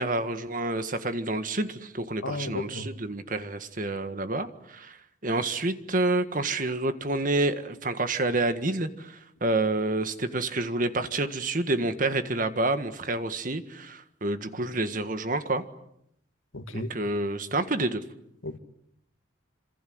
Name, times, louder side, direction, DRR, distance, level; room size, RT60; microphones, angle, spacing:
voice 1, 0.0-5.0 5.2-15.6 16.7-18.0, right 2 dB, 40° right, 1.8 m, -28 dB
voice 2, 2.2-2.9 16.5-16.9 18.4-18.6, left 2 dB, 85° left, 2.4 m, -34 dB
27.5 x 27.0 x 8.0 m
head